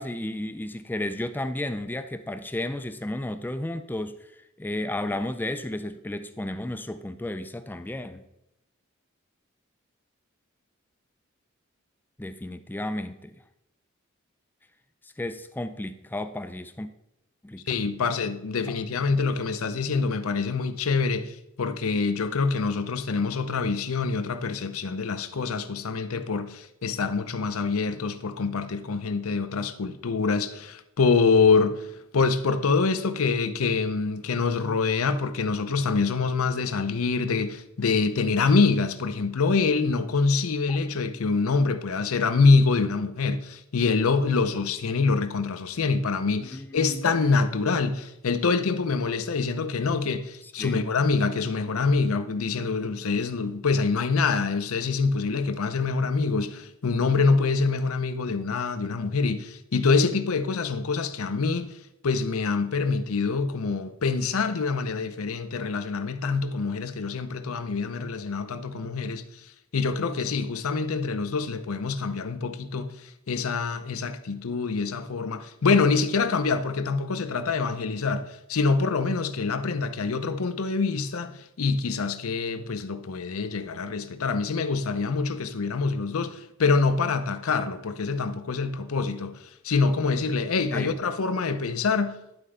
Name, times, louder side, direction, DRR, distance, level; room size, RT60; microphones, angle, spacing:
voice 1, 0.0-4.3 4.6-8.2 12.2-13.4 15.0-16.9 17.4-17.6 18.0-18.1 18.7-18.8 40.7-40.8 46.4-47.1 50.6-50.8 90.7-90.9, left 1 dB, 10° left, 0.4 m, -33 dB
voice 2, 17.7-31.9 32.1-61.7 62.0-69.2 69.7-92.2, left 4 dB, 80° left, 0.6 m, -25 dB
10.5 x 4.4 x 4.9 m
head